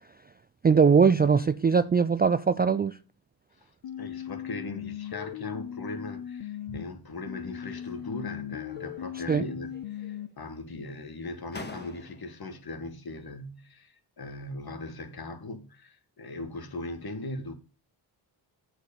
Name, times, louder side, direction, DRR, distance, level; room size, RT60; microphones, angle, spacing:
voice 1, 0.6-3.0 9.3-9.4, right 5 dB, 20° right, 0.3 m, -21 dB
sound 1, 3.8-6.8 7.3-10.3, left 10 dB, 85° left, 0.7 m, -38 dB
voice 2, 4.0-17.5, left 2 dB, 45° left, 1.6 m, -39 dB
sound 2, 7.7-8.3 8.6-9.4 9.7-10.5 11.1-11.2 11.5-12.5, left 3 dB, 20° left, 1.6 m, -47 dB
7.8 x 4.6 x 6.9 m
cardioid pair, 55°, 49 cm